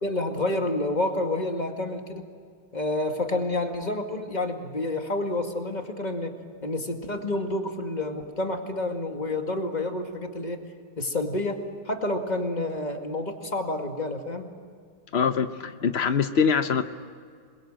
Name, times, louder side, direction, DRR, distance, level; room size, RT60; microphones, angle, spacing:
voice 1, 0.0-2.2 2.7-10.6 11.0-14.5, left 2 dB, 20° left, 4 dB, 2.0 m, -29 dB
voice 2, 15.1-16.8, left 6 dB, 80° left, 9 dB, 0.5 m, -23 dB
27.5 x 21.5 x 7.7 m, 2.1 s
omnidirectional pair, 2.3 m